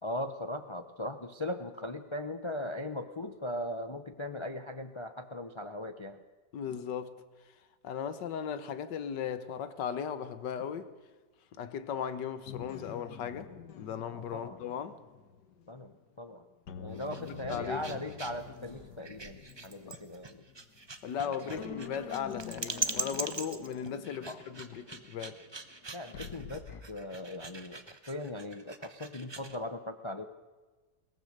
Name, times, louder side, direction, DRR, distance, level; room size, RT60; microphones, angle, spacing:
voice 1, 0.0-6.2 14.1-14.6 15.7-16.5 16.8-20.4 21.2-22.0 24.3-24.4 25.9-30.2, left 1 dB, 50° left, 0.3 m, -39 dB
voice 2, 6.5-7.1 7.8-10.9 11.5-13.5 13.8-15.0 17.2-17.9 19.9-20.0 21.0-25.4, left 8 dB, 90° left, 1.7 m, -37 dB
sound 1, 12.5-16.2 16.7-21.2 21.6-26.8, left 7 dB, 70° left, 1.8 m, -48 dB
sound 2, 16.9-29.6, right 3 dB, 20° right, 0.7 m, -42 dB
22.0 x 18.0 x 6.6 m
omnidirectional pair, 1.8 m